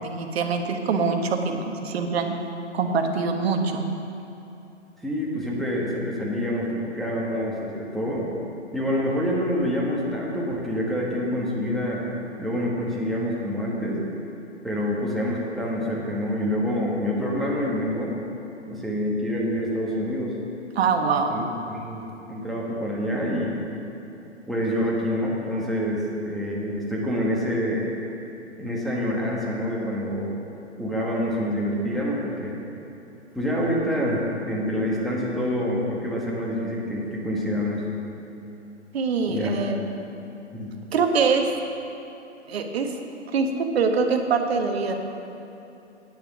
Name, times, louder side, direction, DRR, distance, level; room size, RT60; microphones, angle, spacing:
voice 1, 0.0-2.4 2.7-3.9 20.7-21.4 38.9-39.8 40.9-41.4 42.5-42.9 43.3-44.9, right 5 dB, 55° right, 5 dB, 1.2 m, -24 dB
voice 2, 5.0-8.3 8.7-12.0 12.4-14.0 14.6-18.1 18.7-20.3 21.3-23.6 24.5-27.9 28.6-30.4 30.8-32.6 33.3-37.8 39.3-39.5 40.5-40.7, equal, ahead, -4 dB, 1.3 m, -27 dB
9.4 x 9.0 x 6.0 m, 2.9 s
hypercardioid pair, 135°, 37 cm